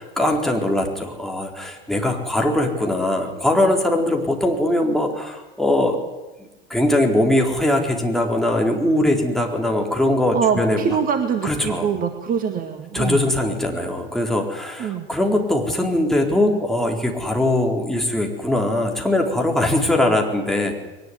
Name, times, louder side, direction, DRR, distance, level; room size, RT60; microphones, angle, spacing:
voice 1, 0.0-6.0 6.4-10.8 11.4-11.9 12.9-20.7, left 1 dB, ahead, 0 dB, 4.1 m, -21 dB
voice 2, 10.3-13.3 14.8-15.1, right 7 dB, 30° right, 7 dB, 2.0 m, -24 dB
21.5 x 19.5 x 9.9 m, 1.1 s
figure-of-eight pair, 85°, 30 cm